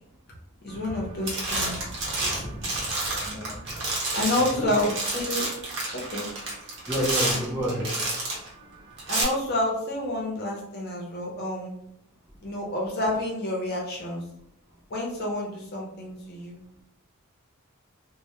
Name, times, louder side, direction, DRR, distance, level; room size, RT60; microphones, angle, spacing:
voice 1, 0.6-1.8 4.1-5.5 5.9-6.3 9.1-11.7 12.4-14.2 14.9-16.6, left 1 dB, 45° left, -2 dB, 0.6 m, -29 dB
sound 1, 0.8-1.0 1.3-8.5 9.0-9.2, right 2 dB, 60° right, 0.8 m, -29 dB
voice 2, 3.2-3.6 4.3-4.7 6.9-7.9, equal, 10° right, -5 dB, 0.5 m, -29 dB
2.1 x 2.0 x 2.9 m, 0.75 s
head